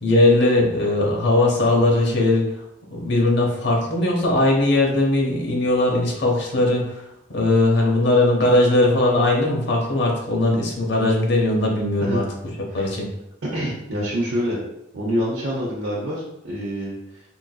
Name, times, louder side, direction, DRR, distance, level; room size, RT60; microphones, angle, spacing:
voice 1, 0.0-2.5 2.9-7.0 7.3-12.2 12.7-13.1, left 2 dB, 60° left, -1 dB, 0.8 m, -19 dB
voice 2, 13.4-14.6 14.9-17.2, equal, 85° right, -7 dB, 0.8 m, -26 dB
3.7 x 2.6 x 2.3 m, 0.85 s
head